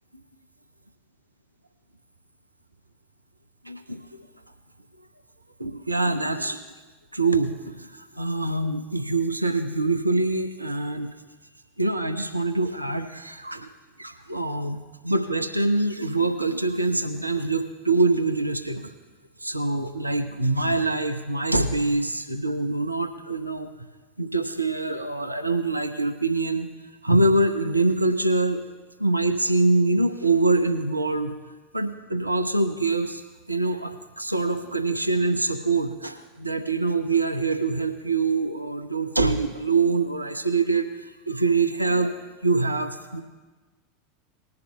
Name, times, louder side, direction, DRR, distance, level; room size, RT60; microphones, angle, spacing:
voice 1, 3.6-4.3 5.6-6.6 7.1-11.1 11.8-13.7 14.0-14.8 15.0-18.9 19.4-23.7 24.2-26.7 27.0-28.6 29.0-31.3 31.7-33.2 33.5-42.2 42.4-43.2, right 3 dB, 85° right, 7 dB, 0.6 m, -24 dB
20.5 x 10.5 x 2.2 m, 1.3 s
figure-of-eight pair, 85°, 0 cm